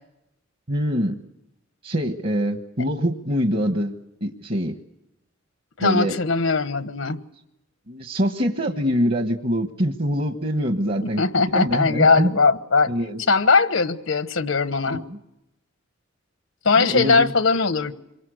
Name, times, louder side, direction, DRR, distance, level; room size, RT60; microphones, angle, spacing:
voice 1, 0.7-1.2 1.8-3.9 4.2-4.7 5.8-6.2 7.9-11.2 11.5-12.3 12.9-13.2 14.9-15.2 16.8-17.3, equal, 50° right, 1.3 m, -24 dB
voice 2, 5.8-7.2 11.0-12.9 13.3-15.0 16.6-17.9, left 4 dB, 85° left, 1.2 m, -20 dB
27.0 x 24.0 x 6.5 m
head